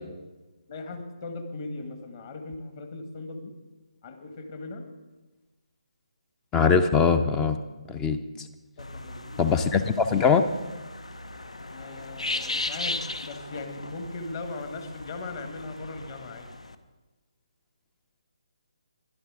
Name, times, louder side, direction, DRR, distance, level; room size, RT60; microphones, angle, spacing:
voice 1, 0.7-3.5 4.0-4.8 8.8-9.6 11.7-16.5, left 3 dB, 35° left, 6 dB, 1.6 m, -38 dB
voice 2, 6.5-7.6 7.9-8.2 9.4-10.4, left 5 dB, 10° left, 10 dB, 0.5 m, -21 dB
sound 1, 8.8-16.7, left 2 dB, 70° left, 0.9 m, -37 dB
21.5 x 11.5 x 3.7 m, 1.2 s
figure-of-eight pair, 145°, 3 cm